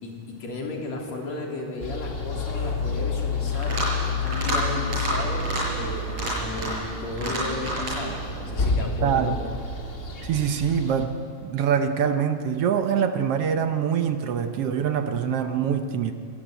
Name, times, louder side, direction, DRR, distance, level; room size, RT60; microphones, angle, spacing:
voice 1, 0.0-9.3, left 2 dB, 60° left, 0 dB, 4.5 m, -34 dB
sound 1, 1.8-11.0, left 3 dB, 30° left, 1.9 m, -29 dB
sound 2, 3.5-4.0 4.3-4.6 4.9-5.1 5.4-5.6 6.1-6.9 7.2-8.0, equal, 50° right, 7.4 m, -29 dB
voice 2, 9.0-9.4 10.2-16.1, right 7 dB, 65° right, 8 dB, 1.6 m, -24 dB
25.0 x 16.5 x 9.1 m, 2.5 s
omnidirectional pair, 3.5 m